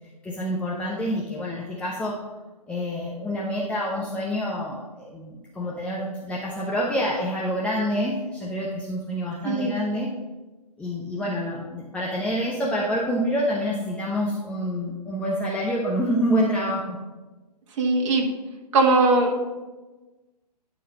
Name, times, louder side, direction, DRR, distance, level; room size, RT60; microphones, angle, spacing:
voice 1, 0.2-2.2 2.7-10.1 10.8-17.0, equal, 5° left, -4 dB, 0.8 m, -27 dB
voice 2, 9.4-9.8 17.8-18.3 18.7-19.4, right 3 dB, 45° right, 1 dB, 1.7 m, -20 dB
11.5 x 4.1 x 5.7 m, 1.2 s
figure-of-eight pair, 130°, 21 cm